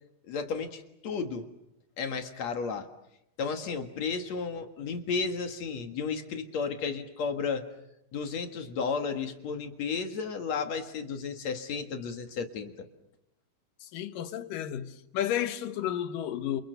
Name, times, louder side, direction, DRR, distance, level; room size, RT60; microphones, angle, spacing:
voice 1, 0.3-1.5 2.0-2.9 3.4-7.7 8.1-12.9, left 5 dB, 55° left, 2.6 m, -33 dB
voice 2, 13.8-16.6, left 11 dB, 70° left, 2.7 m, -32 dB
29.0 x 28.0 x 6.8 m
omnidirectional pair, 4.3 m